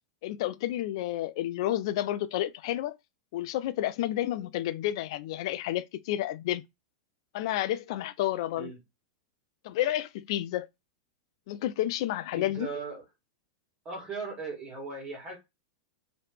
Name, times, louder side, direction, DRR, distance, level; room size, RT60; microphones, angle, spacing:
voice 1, 0.2-3.0 3.3-6.6 7.3-8.7 9.6-10.7 11.5-12.7, left 13 dB, 60° left, 0.3 m, -30 dB
voice 2, 12.4-13.0 13.9-15.4, right 4 dB, 30° right, 1.9 m, -38 dB
3.0 x 2.9 x 3.1 m
hypercardioid pair, 115°, 3 cm